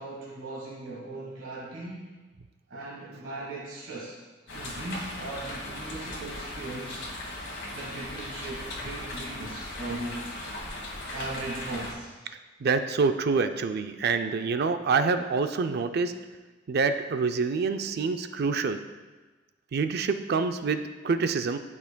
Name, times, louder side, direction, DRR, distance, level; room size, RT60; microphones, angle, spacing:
voice 1, 0.0-2.1 2.7-4.2 4.5-7.0 7.7-10.2 11.1-12.1, right 2 dB, 80° right, -5 dB, 1.4 m, -38 dB
sound 1, 4.5-11.9, left 1 dB, 60° left, 1.4 m, -38 dB
voice 2, 12.6-16.1 16.7-18.8 19.7-21.6, right 4 dB, 55° right, 9 dB, 0.4 m, -26 dB
10.5 x 5.7 x 2.2 m, 1.3 s
head